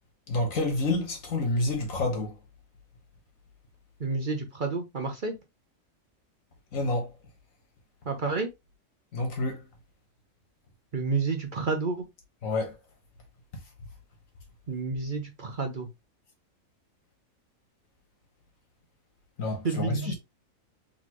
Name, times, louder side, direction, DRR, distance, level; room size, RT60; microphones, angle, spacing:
voice 1, 0.3-2.3 6.7-7.1 9.1-9.6 12.4-12.7 19.4-20.1, left 2 dB, 75° left, 1.8 m, -28 dB
voice 2, 4.0-5.4 8.1-8.5 10.9-12.1 14.7-15.9 19.6-20.1, right 4 dB, 45° right, 0.8 m, -30 dB
4.1 x 3.6 x 2.9 m
omnidirectional pair, 1.4 m